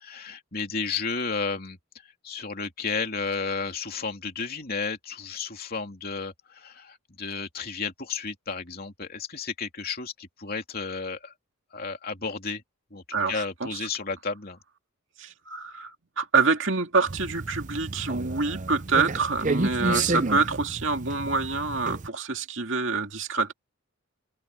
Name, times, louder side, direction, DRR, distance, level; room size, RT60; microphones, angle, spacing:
voice 1, 0.0-1.8 2.2-11.3 11.7-12.6 12.9-14.6 19.8-20.2, left 4 dB, 45° left, 3.2 m, -32 dB
voice 2, 13.1-13.9 15.2-23.5, right 4 dB, 60° right, 2.5 m, -26 dB
sound 1, 17.1-22.1, right 3 dB, 35° right, 0.7 m, -31 dB
head